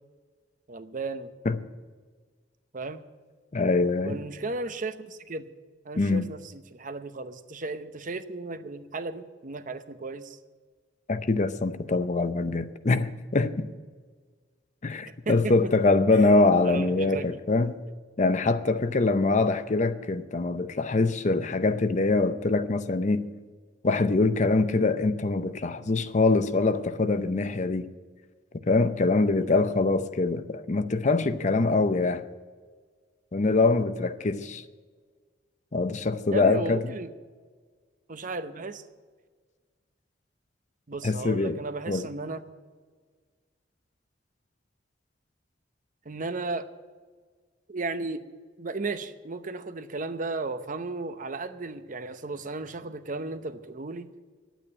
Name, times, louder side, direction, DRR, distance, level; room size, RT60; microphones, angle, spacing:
voice 1, 0.7-1.3 2.7-3.0 4.0-5.5 5.8-10.4 15.1-15.5 16.1-17.2 36.3-37.1 38.1-38.8 40.9-42.4 46.1-46.7 47.7-48.2 48.6-54.1, right 3 dB, 45° right, 0.8 m, -35 dB
voice 2, 3.5-4.2 6.0-6.3 11.1-13.7 14.8-17.8 18.2-23.3 23.8-27.9 28.7-32.2 33.3-34.6 35.7-36.8 41.0-41.6 41.9-42.1, left 3 dB, 40° left, 0.6 m, -24 dB
10.5 x 9.1 x 9.8 m
head